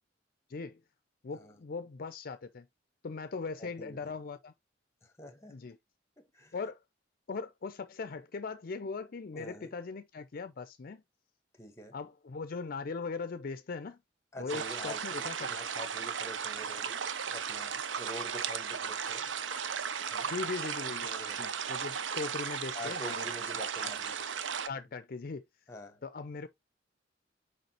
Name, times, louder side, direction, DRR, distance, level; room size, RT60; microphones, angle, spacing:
voice 1, 0.5-0.8 1.2-2.7 3.0-4.5 5.5-5.8 6.5-6.8 7.3-11.0 11.9-14.0 14.4-15.6 20.3-23.3 23.8-23.9 24.7-25.4 26.0-26.5, left 4 dB, 50° left, 0.5 m, -39 dB
voice 2, 3.6-4.1 5.0-5.7 6.2-6.5 9.3-9.7 11.5-12.0 14.3-17.0 17.2-19.3 20.1-20.3 21.0-21.6 22.7-24.5 25.7-26.0, equal, 15° left, 1.3 m, -47 dB
sound 1, 14.5-24.7, right 7 dB, 85° right, 0.6 m, -36 dB
6.6 x 4.9 x 2.9 m
head